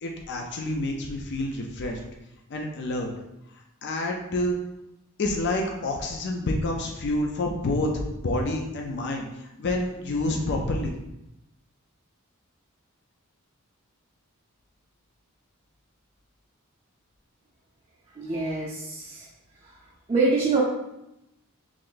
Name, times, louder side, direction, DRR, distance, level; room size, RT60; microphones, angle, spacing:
voice 1, 0.0-2.0 2.5-3.1 3.8-4.6 5.2-10.9, left 2 dB, 50° left, 1 dB, 0.4 m, -28 dB
voice 2, 18.2-19.3 20.1-20.6, right 3 dB, 25° right, -5 dB, 0.5 m, -25 dB
3.1 x 2.5 x 3.8 m, 0.88 s
head